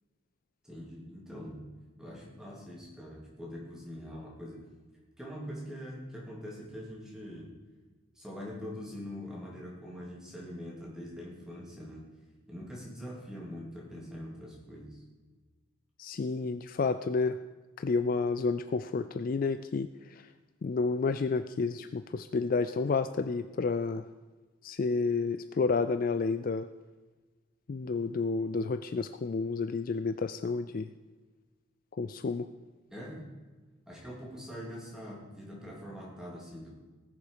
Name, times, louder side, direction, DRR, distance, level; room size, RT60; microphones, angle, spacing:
voice 1, 0.6-4.6 5.2-7.6 8.1-12.0 12.5-15.0 32.9-33.4 33.8-36.7, equal, 5° right, -5 dB, 3.2 m, -43 dB
voice 2, 16.0-17.4 17.8-20.3 20.6-24.0 24.6-26.7 27.7-30.9 32.0-32.5, left 4 dB, 40° left, 11 dB, 0.3 m, -30 dB
19.5 x 6.9 x 5.0 m, 1.3 s
head